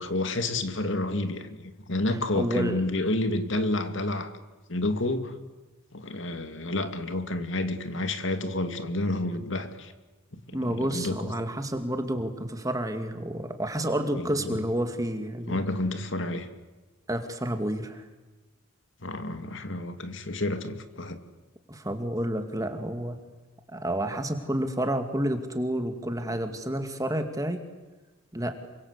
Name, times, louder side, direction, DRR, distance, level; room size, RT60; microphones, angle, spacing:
voice 1, 0.0-1.6 1.9-4.3 4.7-5.3 5.9-9.9 10.3-11.2 14.1-14.6 15.5-16.5 19.0-21.2, left 2 dB, 60° left, 8 dB, 2.5 m, -30 dB
voice 2, 2.3-2.8 10.5-15.6 17.1-18.0 21.7-23.2 23.7-27.6 28.3-28.6, right 1 dB, 15° right, 7 dB, 2.3 m, -30 dB
28.0 x 25.0 x 8.3 m, 1.2 s
head